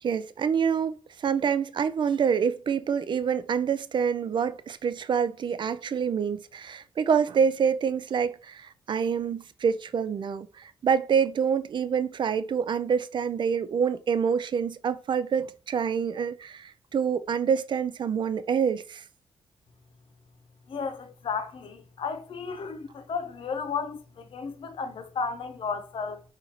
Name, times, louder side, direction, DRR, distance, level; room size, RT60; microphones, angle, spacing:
voice 1, 0.0-19.0, right 7 dB, 55° right, 0.4 m, -26 dB
voice 2, 20.7-26.2, left 5 dB, 65° left, 0.8 m, -33 dB
5.5 x 2.5 x 3.0 m
cardioid pair, 75°, 10 cm